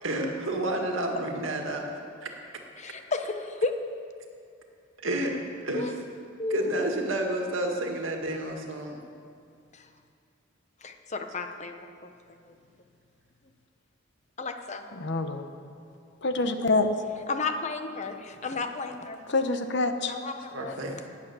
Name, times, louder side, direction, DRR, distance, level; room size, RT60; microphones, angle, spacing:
voice 1, 0.0-2.3 5.0-5.9 6.5-9.0 20.5-21.1, right 1 dB, 80° right, 2 dB, 2.0 m, -30 dB
voice 2, 2.8-3.7 5.7-6.0 6.4-6.7 9.7-9.8 10.8-12.1 12.4-12.5 14.4-14.9 17.3-19.2 20.1-20.7, left 3 dB, 35° left, 6 dB, 0.9 m, -33 dB
voice 3, 14.9-15.5 16.2-16.9 19.3-20.1, left 3 dB, 60° left, 8 dB, 1.0 m, -26 dB
18.5 x 8.5 x 6.9 m, 2.4 s
head